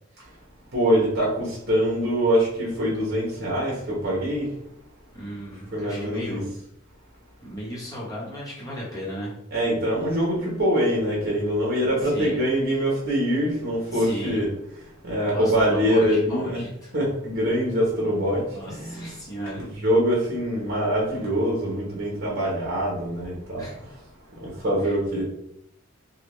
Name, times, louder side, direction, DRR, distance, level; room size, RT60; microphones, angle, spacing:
voice 1, 0.7-4.5 5.7-6.4 9.5-14.5 15.0-16.6 16.9-18.4 18.7-19.1 19.5-23.6 24.4-25.2, equal, 50° right, -4 dB, 1.0 m, -24 dB
voice 2, 5.1-6.5 7.4-9.3 12.0-12.4 13.9-14.4 15.2-16.9 18.5-19.6 23.6-23.7 24.8-24.9, equal, 20° left, -6 dB, 1.1 m, -35 dB
3.5 x 2.3 x 3.1 m, 0.75 s
head